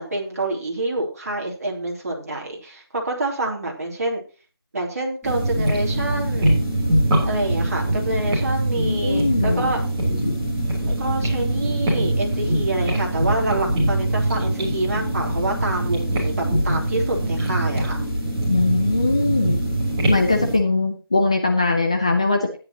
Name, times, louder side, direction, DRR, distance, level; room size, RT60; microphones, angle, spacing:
voice 1, 0.0-4.2 4.7-6.6 7.2-9.8 10.9-18.0, right 2 dB, 40° right, -1 dB, 3.2 m, -27 dB
sound 1, 5.2-20.6, right 1 dB, 10° right, 3.2 m, -23 dB
voice 2, 8.9-9.7 10.2-10.4 18.5-19.6 20.1-22.6, left 3 dB, 15° left, 3 dB, 0.5 m, -21 dB
13.0 x 10.5 x 3.0 m, 0.34 s
figure-of-eight pair, 170°, 13 cm